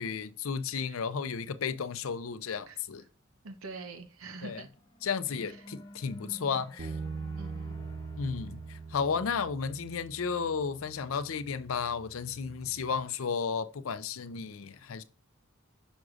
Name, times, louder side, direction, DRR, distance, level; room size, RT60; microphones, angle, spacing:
voice 1, 0.0-3.0 4.4-4.6 5.0-7.0 8.2-15.0, left 6 dB, 75° left, 0.5 m, -33 dB
voice 2, 3.4-4.7 5.4-5.7 7.3-7.7, right 3 dB, 85° right, 0.8 m, -45 dB
sound 1, 4.6-10.1, equal, 20° left, 1.3 m, -51 dB
Bass guitar, 6.8-13.0, right 5 dB, 40° right, 0.3 m, -43 dB
6.3 x 6.1 x 2.4 m
head